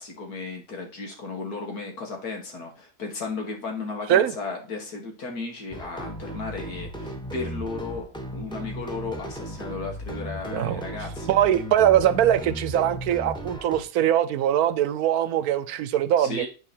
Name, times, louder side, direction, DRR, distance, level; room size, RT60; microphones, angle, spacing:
voice 1, 0.0-8.0 8.3-11.4 16.2-16.5, left 3 dB, 90° left, 2.2 m, -35 dB
sound 1, 5.7-13.8, equal, 5° left, 0.8 m, -36 dB
voice 2, 10.5-10.9 11.3-16.5, right 11 dB, 80° right, 1.1 m, -22 dB
9.1 x 3.9 x 4.4 m
omnidirectional pair, 1.6 m